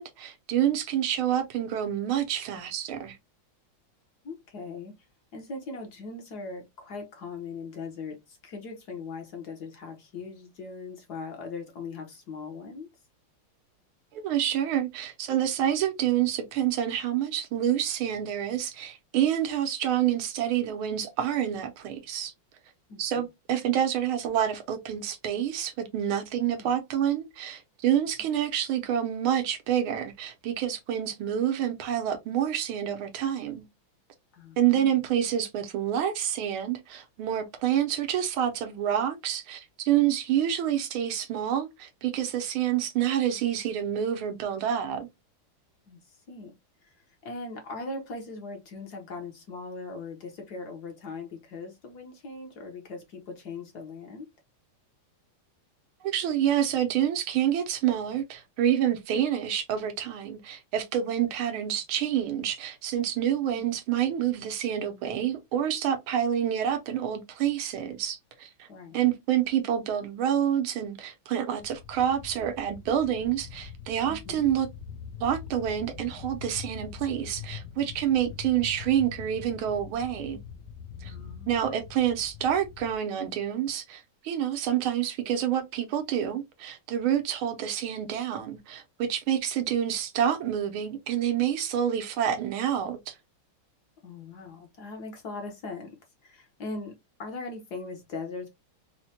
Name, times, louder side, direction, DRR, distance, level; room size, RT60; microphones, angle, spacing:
voice 1, 0.0-3.2 14.1-22.3 23.0-33.6 34.6-45.1 56.0-68.7 68.9-74.7 75.2-80.4 81.0-81.1 81.5-93.1, right 10 dB, 80° right, 1.6 m, -28 dB
voice 2, 4.2-5.0 5.3-12.9 22.9-23.2 26.5-26.7 34.3-35.0 45.9-46.5 46.8-54.3 63.5-63.7 68.7-69.0 74.0-74.5 81.0-81.8 94.0-96.0 96.2-98.5, left 3 dB, 60° left, 1.2 m, -40 dB
sound 1, 71.6-83.0, left 7 dB, 80° left, 0.9 m, -43 dB
4.3 x 2.1 x 2.7 m
omnidirectional pair, 2.3 m